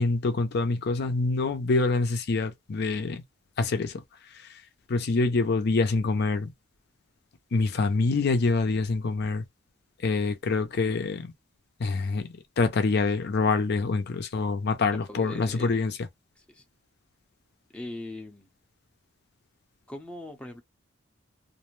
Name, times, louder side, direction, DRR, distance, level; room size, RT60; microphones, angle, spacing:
voice 1, 0.0-3.2 3.6-4.0 4.9-6.5 7.5-9.4 10.0-11.3 11.8-15.9, left 3 dB, 55° left, 0.5 m, -26 dB
voice 2, 15.1-15.8 16.4-16.6 17.7-18.5 19.9-20.6, left 2 dB, 5° left, 0.6 m, -40 dB
2.5 x 2.1 x 3.0 m
head